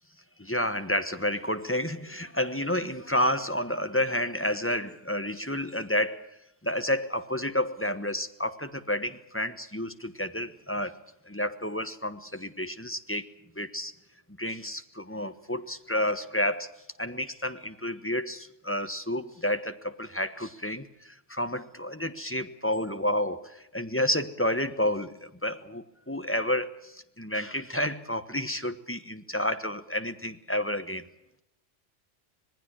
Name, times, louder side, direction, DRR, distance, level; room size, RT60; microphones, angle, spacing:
voice 1, 0.4-6.3 6.6-11.0 11.3-13.3 13.5-13.9 14.4-16.7 17.0-31.1, left 1 dB, 10° left, 1.2 m, -30 dB
26.0 x 19.5 x 6.3 m
omnidirectional pair, 1.2 m